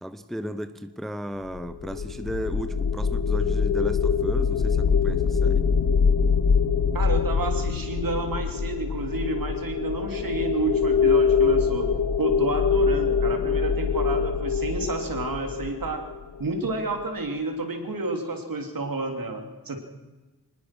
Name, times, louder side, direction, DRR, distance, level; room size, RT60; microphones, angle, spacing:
voice 1, 0.0-5.6, equal, ahead, 0.8 m, -35 dB
sound 1, 1.5-16.7, left 6 dB, 55° left, 1.3 m, -24 dB
voice 2, 6.9-16.0 16.4-19.8, right 3 dB, 55° right, 3.4 m, -30 dB
24.5 x 20.0 x 6.2 m
wide cardioid pair, 145°, 39 cm